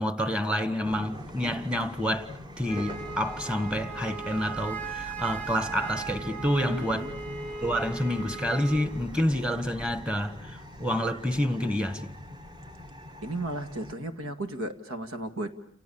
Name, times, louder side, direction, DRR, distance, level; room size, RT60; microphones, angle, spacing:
voice 1, 0.0-2.3 2.6-7.1 7.6-12.1, equal, 5° right, 1.5 m, -28 dB
sound 1, 0.8-13.9, left 1 dB, 20° right, 1.3 m, -44 dB
Wind instrument woodwind instrument, 2.6-8.9, right 5 dB, 40° right, 4.9 m, -38 dB
sound 2, 2.8-10.0, equal, 55° right, 3.5 m, -47 dB
voice 2, 6.6-7.2 13.2-15.5, right 1 dB, 75° right, 2.1 m, -34 dB
30.0 x 27.5 x 7.1 m
head